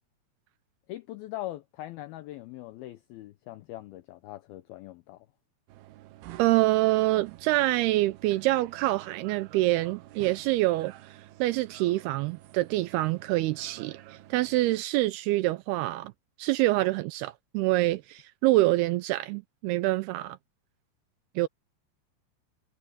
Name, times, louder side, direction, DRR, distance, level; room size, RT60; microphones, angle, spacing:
voice 1, 0.9-5.3, left 15 dB, 85° left, 2.2 m, -41 dB
sound 1, 5.7-14.8, right 15 dB, 75° right, 2.6 m, -49 dB
voice 2, 6.4-16.1 16.4-20.4 21.4-21.5, right 18 dB, 90° right, 2.2 m, -26 dB
omnidirectional pair, 5.2 m